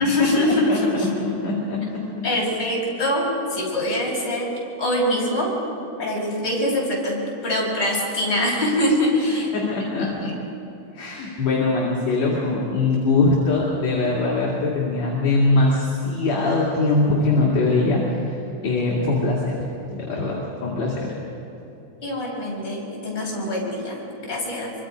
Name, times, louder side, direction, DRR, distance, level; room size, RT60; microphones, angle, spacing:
voice 1, 0.0-1.1 2.2-4.5 4.8-5.5 6.0-9.5 10.0-10.3 22.0-24.7, left 1 dB, 30° left, -4 dB, 5.9 m, -24 dB
voice 2, 0.7-2.3 9.5-10.4 10.9-18.4 18.6-21.1, left 3 dB, 55° left, -5 dB, 3.6 m, -22 dB
25.0 x 24.5 x 5.1 m, 2.9 s
omnidirectional pair, 3.8 m